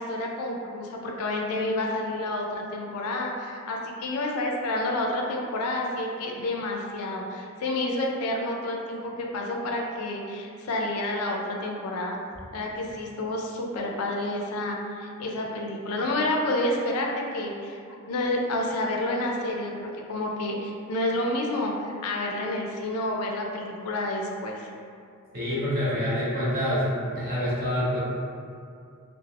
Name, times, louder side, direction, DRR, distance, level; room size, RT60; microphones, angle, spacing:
voice 1, 0.0-12.2 12.5-17.8 18.1-24.7, left 1 dB, 90° left, 0 dB, 0.4 m, -29 dB
voice 2, 25.3-26.8 27.1-28.0, equal, 45° right, -9 dB, 0.9 m, -26 dB
2.3 x 2.0 x 3.2 m, 2.4 s
head